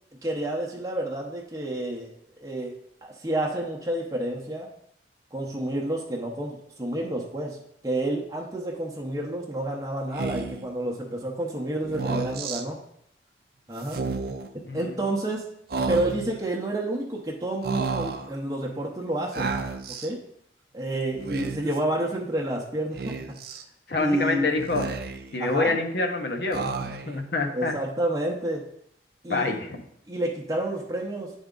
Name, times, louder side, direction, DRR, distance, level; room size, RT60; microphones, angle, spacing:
voice 1, 0.2-2.1 2.4-2.7 3.0-4.7 5.3-12.8 13.7-14.0 14.7-15.4 15.9-19.5 19.9-20.2 20.7-23.4 24.0-24.5 25.4-25.8 27.5-28.7 29.2-29.5 30.1-31.3, right 1 dB, 20° right, -2 dB, 0.7 m, -29 dB
Speech, 10.1-10.7 11.8-12.6 13.8-14.5 15.7-16.4 17.6-18.3 19.3-20.1 21.1-21.8 23.0-23.6 24.6-25.4 26.5-27.2, right 4 dB, 55° right, 0.5 m, -31 dB
voice 2, 14.6-15.0 23.9-24.9 25.3-27.7 29.3-29.8, left 3 dB, 60° left, 3 dB, 0.8 m, -27 dB
10.0 x 3.5 x 3.8 m, 0.72 s
head